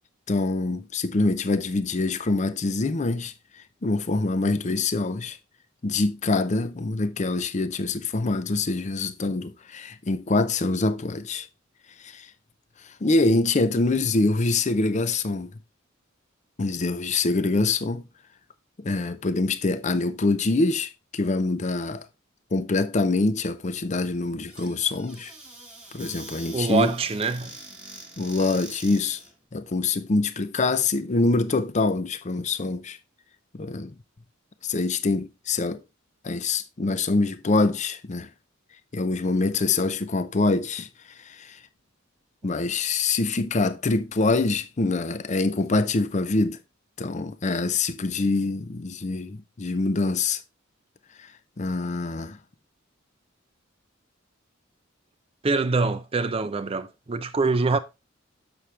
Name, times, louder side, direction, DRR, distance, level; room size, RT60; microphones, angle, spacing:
voice 1, 0.3-3.3 3.8-5.4 5.8-11.5 12.0-12.3 12.8-15.5 16.6-18.0 18.8-22.1 22.5-25.3 25.9-26.9 28.2-29.2 29.5-33.0 33.5-33.9 34.6-35.8 36.2-38.3 38.9-40.9 41.2-41.6 42.4-46.6 47.0-50.4 51.2-51.3 51.6-52.4, left 3 dB, 35° left, 0.6 m, -25 dB
Squeak / Cupboard open or close, 24.5-29.3, right 2 dB, 5° right, 1.3 m, -44 dB
voice 2, 26.5-27.5 55.4-57.8, right 3 dB, 30° right, 0.5 m, -24 dB
7.1 x 6.2 x 3.3 m
head